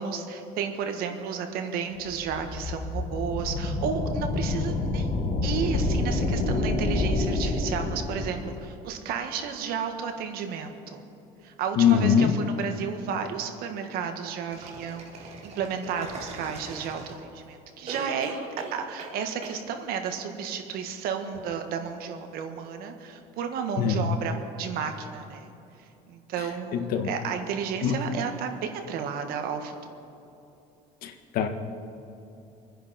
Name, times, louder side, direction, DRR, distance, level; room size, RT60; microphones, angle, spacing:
voice 1, 0.0-5.1 5.4-11.0 11.4-18.4 18.7-25.5 26.1-30.1, right 6 dB, 75° right, 6 dB, 1.7 m, -32 dB
sound 1, 2.0-8.5, left 2 dB, 45° left, 4.0 m, -28 dB
voice 2, 11.7-12.4 23.8-24.1 26.7-27.1 27.8-28.0 31.0-31.5, left 7 dB, 70° left, 6 dB, 1.5 m, -22 dB
sound 2, 14.5-17.4 17.9-19.2 19.4-19.6, right 3 dB, 45° right, 3.1 m, -40 dB
26.5 x 10.0 x 4.4 m, 2.8 s
cardioid pair, 115°, 16 cm